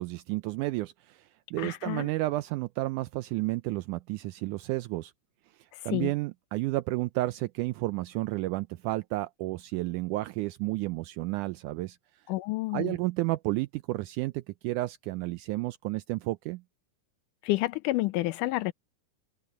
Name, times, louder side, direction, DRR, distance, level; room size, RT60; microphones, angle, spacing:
voice 1, 0.0-5.1 5.6-12.0 12.7-16.6, right 19 dB, 80° right, 2.0 m, -31 dB
voice 2, 1.6-2.1 5.9-6.1 12.3-13.0 17.4-18.7, left 18 dB, 80° left, 2.2 m, -29 dB
omnidirectional pair, 3.7 m